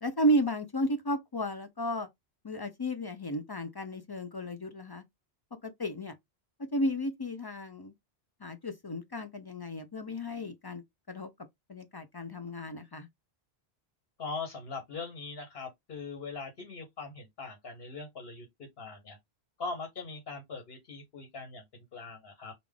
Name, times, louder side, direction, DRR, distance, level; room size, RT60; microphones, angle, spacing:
voice 1, 0.0-2.1 2.4-5.0 5.6-6.1 6.7-7.9 8.4-11.3 11.7-13.1, equal, 40° left, 0.3 m, -33 dB
voice 2, 14.2-19.2 19.6-22.5, left 4 dB, 65° left, 1.1 m, -41 dB
3.5 x 2.5 x 3.3 m
omnidirectional pair, 1.1 m